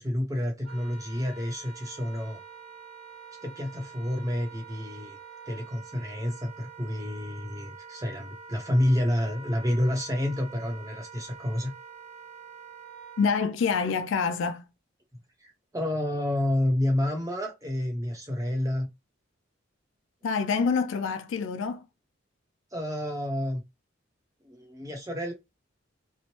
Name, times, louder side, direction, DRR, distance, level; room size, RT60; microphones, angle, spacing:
voice 1, 0.0-2.4 3.4-5.2 5.5-11.7 15.4-18.9 22.7-23.6 24.4-25.3, left 1 dB, 15° right, 0.7 m, -29 dB
Wind instrument woodwind instrument, 0.6-13.4, right 5 dB, 30° left, 1.1 m, -46 dB
voice 2, 13.2-14.6 20.2-21.9, left 5 dB, 70° left, 0.3 m, -26 dB
3.0 x 2.0 x 2.8 m
head